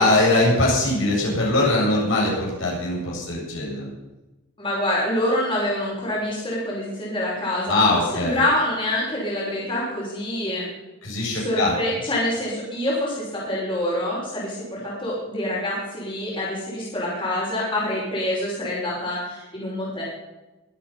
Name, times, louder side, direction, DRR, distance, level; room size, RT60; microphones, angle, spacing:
voice 1, 0.0-3.9 7.7-8.4 11.0-11.7, left 2 dB, 65° left, -3 dB, 7.7 m, -21 dB
voice 2, 4.6-10.7 11.3-20.0, left 1 dB, 25° left, -6 dB, 5.7 m, -26 dB
24.0 x 9.0 x 5.7 m, 1.1 s
head